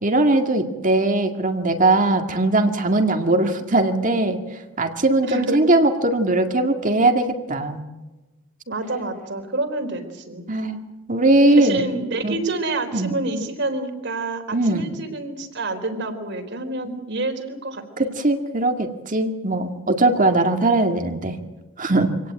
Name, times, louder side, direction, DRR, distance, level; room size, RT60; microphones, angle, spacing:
voice 1, 0.0-4.4 4.8-7.8 10.5-10.8 11.1-11.8 12.2-12.3 12.9-13.1 14.5-14.8 16.8-17.0 18.0-21.4 21.8-22.1, right 2 dB, 40° right, 5 dB, 2.2 m, -20 dB
voice 2, 5.2-5.6 8.7-10.4 11.6-18.1, right 2 dB, 60° right, 6 dB, 4.1 m, -28 dB
26.0 x 18.0 x 9.0 m, 1.1 s
head